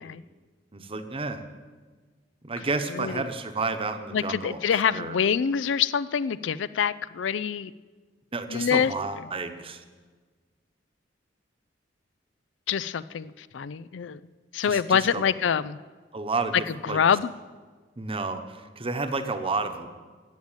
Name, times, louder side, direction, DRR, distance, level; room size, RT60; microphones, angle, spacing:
voice 1, 0.7-1.4 2.4-5.2 8.3-9.8 14.6-15.2 16.1-17.0 18.0-19.9, right 3 dB, 30° right, 8 dB, 1.0 m, -31 dB
voice 2, 2.9-3.2 4.1-7.7 8.5-8.9 12.7-14.2 14.5-15.8 16.8-17.3, left 7 dB, 75° left, 16 dB, 0.4 m, -25 dB
14.5 x 7.7 x 9.0 m, 1.4 s
head